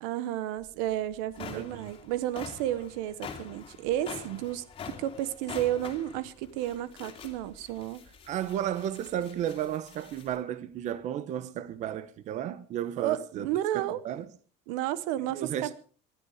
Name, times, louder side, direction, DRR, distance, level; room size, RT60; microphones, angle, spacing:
voice 1, 0.0-4.6 5.0-8.0 13.0-14.0 14.7-15.7, right 13 dB, 85° right, 1.1 m, -32 dB
sound 1, 0.6-0.7 1.1-10.4, left 6 dB, 30° left, 2.5 m, -45 dB
voice 2, 1.4-1.9 8.3-13.5 13.7-14.3 15.3-15.7, right 10 dB, 40° right, 1.1 m, -33 dB
20.0 x 12.0 x 5.0 m
cardioid pair, 165°, 18 cm